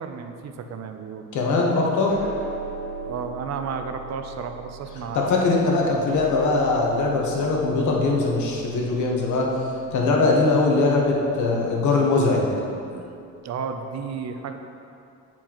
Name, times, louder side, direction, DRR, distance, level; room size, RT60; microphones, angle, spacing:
voice 1, 0.0-1.3 3.0-5.2 12.9-13.1 13.4-14.6, right 6 dB, 60° right, 7 dB, 0.6 m, -33 dB
voice 2, 1.3-2.2 5.1-9.5 9.9-12.5, left 3 dB, 75° left, -1 dB, 1.2 m, -21 dB
sound 1, 2.1-12.5, right 5 dB, 80° right, 1.0 m, -39 dB
9.3 x 4.5 x 3.0 m, 2.5 s
cardioid pair, 90°, 30 cm